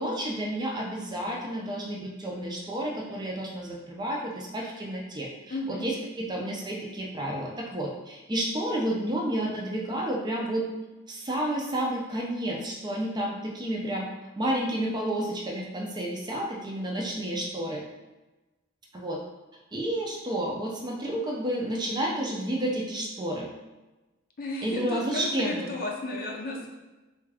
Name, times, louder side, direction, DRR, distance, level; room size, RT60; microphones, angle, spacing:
voice 1, 0.0-10.7 11.1-14.1 14.4-17.8 18.9-19.2 19.7-23.5 24.6-25.7, right 1 dB, 20° right, -2 dB, 0.5 m, -31 dB
voice 2, 5.5-5.9 24.4-26.7, left 1 dB, 45° left, 0 dB, 0.5 m, -34 dB
3.4 x 2.3 x 3.3 m, 1.1 s
head